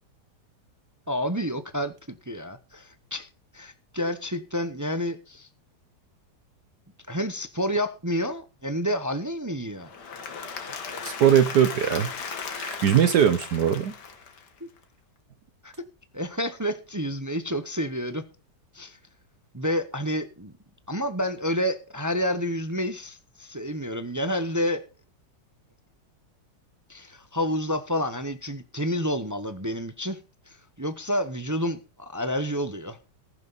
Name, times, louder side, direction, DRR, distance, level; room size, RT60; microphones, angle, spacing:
voice 1, 1.1-3.3 3.5-5.5 7.1-9.9 15.6-15.7 16.1-18.2 18.7-19.0 19.5-20.5 20.9-24.8 26.9-30.2 30.5-33.0, equal, 20° right, 0.5 m, -29 dB
Applause / Crowd, 9.8-14.8, left 5 dB, 70° left, 2.2 m, -36 dB
voice 2, 11.0-12.1 12.5-13.9, right 9 dB, 65° right, 1.4 m, -21 dB
15.0 x 11.0 x 4.1 m
omnidirectional pair, 1.9 m